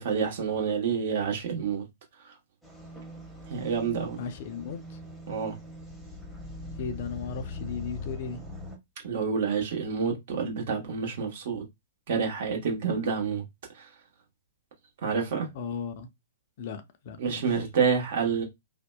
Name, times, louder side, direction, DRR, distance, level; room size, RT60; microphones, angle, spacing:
voice 1, 0.0-1.8 2.2-2.3 3.5-4.2 5.3-5.5 9.0-11.6 12.1-13.4 13.7-13.9 15.0-15.5 17.2-18.4, right 6 dB, 55° right, 1.0 m, -28 dB
sound 1, 2.6-8.8, left 2 dB, ahead, 0.8 m, -41 dB
voice 2, 4.2-5.0 6.8-8.4 15.5-16.1 16.6-17.9, left 5 dB, 50° left, 0.4 m, -37 dB
2.7 x 2.1 x 2.2 m
figure-of-eight pair, 115°, 0 cm